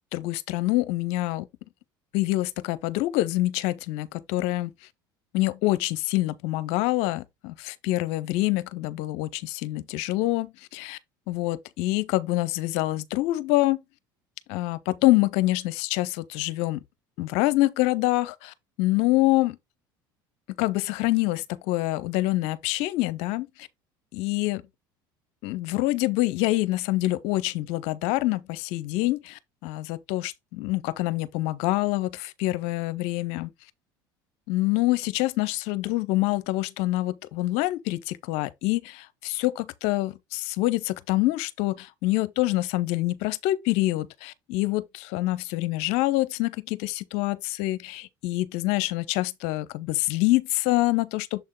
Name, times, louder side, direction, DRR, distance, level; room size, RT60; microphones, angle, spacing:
voice 1, 0.1-1.4 2.1-4.7 5.3-11.0 11.3-13.8 14.5-16.8 17.2-19.6 20.6-23.5 24.1-24.6 25.4-33.5 34.5-51.4, left 18 dB, 70° left, 0.6 m, -26 dB
7.0 x 3.6 x 3.7 m
hypercardioid pair, 80°, 11 cm